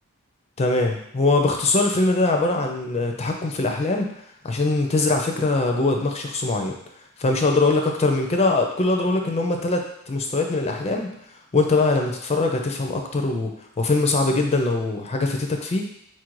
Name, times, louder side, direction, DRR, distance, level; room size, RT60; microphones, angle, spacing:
voice 1, 0.6-4.1 4.4-6.7 7.2-11.1 11.5-13.5 13.8-15.8, left 2 dB, 30° left, 3 dB, 0.4 m, -22 dB
4.3 x 2.5 x 4.5 m, 0.73 s
head